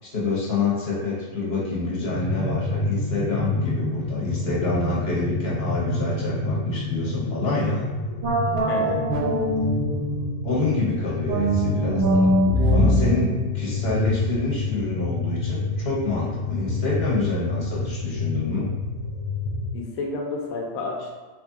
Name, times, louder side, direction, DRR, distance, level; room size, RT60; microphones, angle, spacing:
voice 1, 0.0-7.9 10.4-12.3 12.7-18.7, left 3 dB, 50° left, -6 dB, 1.0 m, -27 dB
sound 1, 2.0-19.7, left 2 dB, 35° left, 0.5 m, -28 dB
sound 2, 8.2-10.5 11.3-14.6, equal, 55° right, 0.7 m, -23 dB
voice 2, 8.7-9.0 12.6-12.7 19.7-21.2, left 3 dB, 80° left, 0 dB, 1.1 m, -31 dB
3.1 x 2.6 x 3.5 m, 1.3 s
omnidirectional pair, 1.5 m